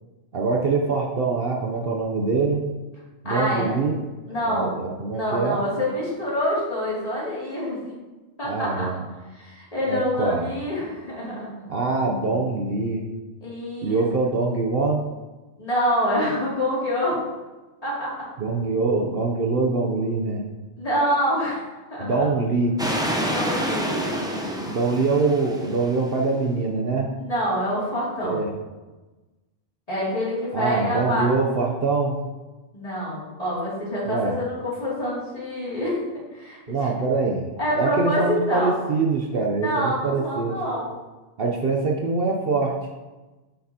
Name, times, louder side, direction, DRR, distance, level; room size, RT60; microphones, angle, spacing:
voice 1, 0.3-2.6 3.2-4.0 4.4-5.6 8.4-9.0 9.9-10.5 11.7-13.0 13.8-15.0 18.4-20.5 22.0-22.8 24.7-27.1 28.2-28.5 30.5-32.2 34.1-34.4 36.7-40.6 41.4-42.8, right 3 dB, 60° right, 1 dB, 0.9 m, -24 dB
voice 2, 3.2-3.8 4.3-4.8 5.1-7.9 8.4-8.9 9.3-11.5 13.4-14.0 15.6-17.2 17.8-18.1 20.8-22.3 23.2-24.6 27.2-28.4 29.9-31.3 32.7-36.0 36.3-36.8 37.6-38.7 39.6-40.9, equal, 30° left, -8 dB, 2.7 m, -26 dB
sound 1, 22.8-26.1, equal, 5° right, 0.6 m, -28 dB
7.7 x 6.3 x 2.8 m, 1.2 s
omnidirectional pair, 1.2 m